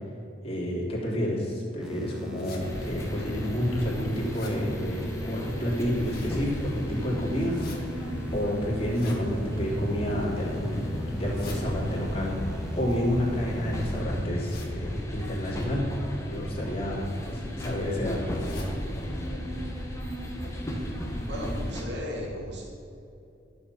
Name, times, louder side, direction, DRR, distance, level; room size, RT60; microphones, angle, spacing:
voice 1, 0.4-7.5 8.0-10.9 11.2-12.4 12.7-15.9 16.3-18.2, equal, 35° left, -4 dB, 3.3 m, -30 dB
sound 1, 1.8-14.0, equal, 5° right, 2.1 m, -40 dB
sound 2, 2.3-2.6 3.3-3.4 3.8-4.6 5.7-6.4 7.3-7.8 8.8-9.2 9.9-10.4 11.1-11.6 12.7-13.7 14.4-14.7 15.4-15.6 16.7-16.9 17.3-17.4 17.6-17.7 18.3-18.7 19.1-19.2 19.5-19.6 20.2-20.3 20.6-20.7, left 3 dB, 55° left, 2.4 m, -46 dB
sound 3, 2.6-21.8, equal, 15° left, 1.6 m, -34 dB
voice 2, 21.3-22.6, equal, 65° right, -3 dB, 2.5 m, -35 dB
12.5 x 7.0 x 7.4 m, 2.7 s
head